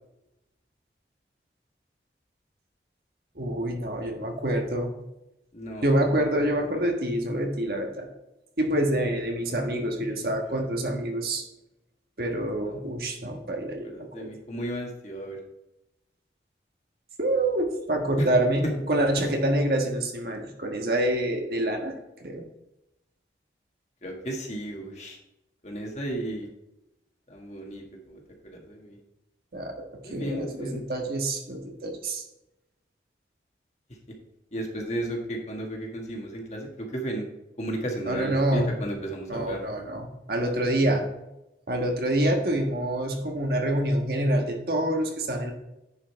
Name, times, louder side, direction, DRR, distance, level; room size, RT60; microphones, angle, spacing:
voice 1, 3.3-4.9 5.8-8.1 8.6-11.4 12.2-14.3 17.2-22.4 29.5-29.8 30.1-32.2 38.1-38.7 39.3-41.1 41.7-45.5, right 1 dB, 55° right, 2 dB, 1.5 m, -26 dB
voice 2, 5.5-5.9 9.5-10.5 13.2-13.3 13.8-15.4 18.2-18.3 18.6-18.7 19.2-19.3 24.0-25.2 25.6-26.5 27.3-29.0 30.0-30.8 34.1-34.2 34.5-37.3 37.6-39.6, right 1 dB, 40° left, 0 dB, 1.7 m, -34 dB
10.0 x 5.4 x 4.6 m, 0.91 s
head